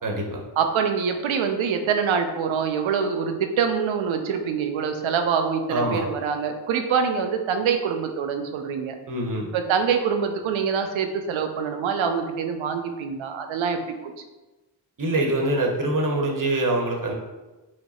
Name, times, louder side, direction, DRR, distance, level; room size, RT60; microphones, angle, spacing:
voice 1, 0.0-0.4 5.7-6.0 9.1-9.4 15.0-17.1, right 1 dB, 45° right, 0 dB, 1.1 m, -24 dB
voice 2, 0.6-9.0 9.5-14.1, right 6 dB, 85° right, 6 dB, 0.6 m, -25 dB
4.7 x 2.2 x 4.2 m, 1.1 s
cardioid pair, 45°, 46 cm